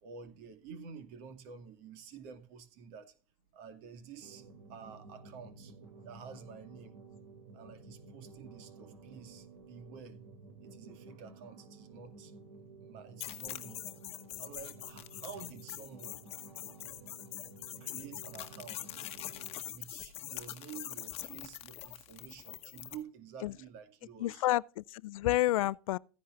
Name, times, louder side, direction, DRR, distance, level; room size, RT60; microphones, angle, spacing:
voice 1, 0.0-3.1 3.5-4.4 4.7-5.7 6.0-6.9 7.5-10.2 10.6-12.3 12.8-13.8 14.4-16.2 17.8-19.0 19.7-24.5, right 6 dB, 50° right, 2.3 m, -50 dB
sound 1, 4.2-19.5, right 3 dB, 85° right, 2.9 m, -53 dB
sound 2, 13.2-23.0, left 14 dB, 35° left, 1.2 m, -44 dB
voice 2, 24.2-26.0, left 16 dB, 70° left, 0.4 m, -30 dB
15.0 x 10.0 x 2.5 m
hypercardioid pair, 120°, 18 cm